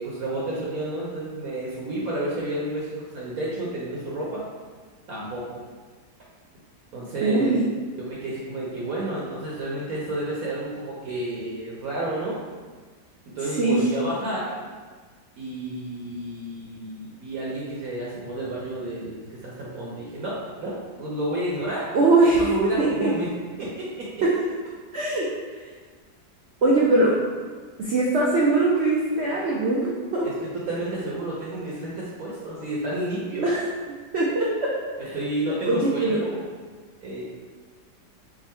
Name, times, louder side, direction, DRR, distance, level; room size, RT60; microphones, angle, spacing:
voice 1, 0.0-4.4 5.1-5.6 6.9-7.5 8.0-12.4 13.3-14.5 15.4-21.9 22.3-23.3 23.6-24.1 30.2-33.5 35.0-36.4 37.0-37.2, right 1 dB, 65° right, -6 dB, 1.0 m, -31 dB
voice 2, 7.2-7.6 13.6-13.8 21.9-22.5 22.8-23.1 24.2-24.3 24.9-25.3 26.6-27.1 27.8-30.3 33.4-33.6 34.1-34.7 35.5-36.2, right 2 dB, 90° right, -5 dB, 0.5 m, -21 dB
3.6 x 2.0 x 4.2 m, 1.5 s
omnidirectional pair, 1.8 m